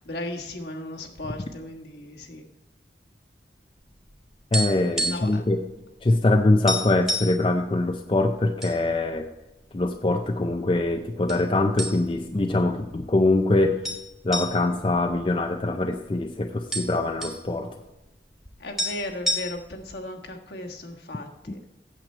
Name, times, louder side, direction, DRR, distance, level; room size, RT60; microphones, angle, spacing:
voice 1, 0.0-2.4 5.0-5.5 18.6-21.6, left 1 dB, 65° left, 2 dB, 1.4 m, -36 dB
sound 1, 4.0-5.4 5.7-5.9 6.2-6.3 6.7-7.4 8.1-8.8 9.1-9.3 10.0-10.6 11.3-11.5 11.8-12.3 12.7-12.8 13.8-15.9 16.2-16.3 16.5-17.4 18.5-18.6 18.8-19.8, equal, ahead, 1.4 m, -29 dB
voice 2, 4.5-5.6 6.0-9.3 9.7-13.8 14.2-17.7, left 2 dB, 30° left, 5 dB, 0.5 m, -23 dB
8.9 x 7.5 x 4.4 m, 1.0 s
head